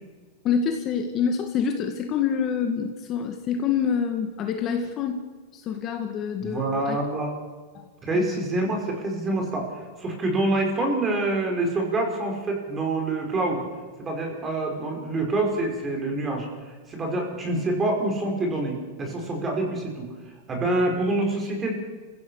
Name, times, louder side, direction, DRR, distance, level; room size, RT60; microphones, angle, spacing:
voice 1, 0.4-5.2 5.5-7.0 7.7-7.9 8.1-8.3, left 7 dB, 30° left, 4 dB, 2.0 m, -26 dB
voice 2, 6.4-7.3 8.0-13.6 14.0-20.1 20.5-21.7, right 2 dB, 20° right, 2 dB, 5.4 m, -26 dB
28.0 x 16.0 x 6.5 m, 1.4 s
supercardioid pair, 155°, 0 cm